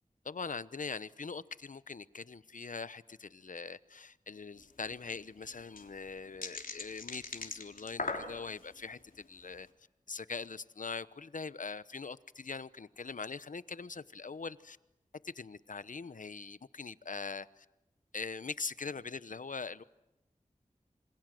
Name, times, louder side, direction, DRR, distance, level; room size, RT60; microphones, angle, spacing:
voice 1, 0.2-9.7 10.1-14.8 15.2-17.7 18.1-19.8, left 4 dB, 70° left, 0.9 m, -42 dB
sound 1, 4.6-4.7 4.9-5.0 5.4-8.7 9.2-9.5, left 3 dB, 90° left, 3.4 m, -40 dB
28.0 x 25.5 x 7.8 m
wide cardioid pair, 50°, 14 cm